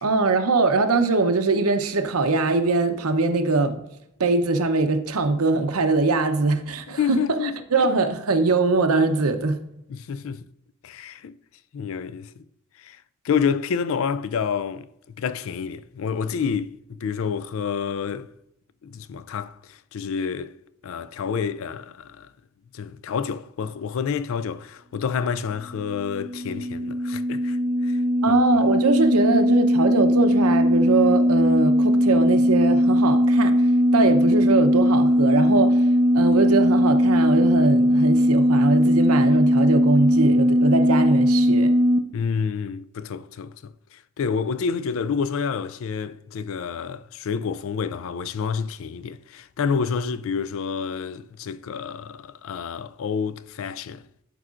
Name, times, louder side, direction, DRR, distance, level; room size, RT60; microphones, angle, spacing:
voice 1, 0.0-3.8 4.2-9.6 28.2-33.5 33.9-35.8 36.1-41.7, right 3 dB, 80° right, 0.8 m, -22 dB
voice 2, 6.9-7.5 9.9-10.5 10.8-11.3 11.7-12.4 12.8-13.0 13.2-14.9 15.2-16.7 17.0-18.3 18.8-20.5 20.8-22.3 22.7-27.6 27.8-28.0 28.3-28.4 42.1-54.0, left 6 dB, 60° left, 0.3 m, -28 dB
sound 1, 25.8-42.0, equal, 25° right, 0.5 m, -19 dB
12.0 x 4.8 x 2.5 m
head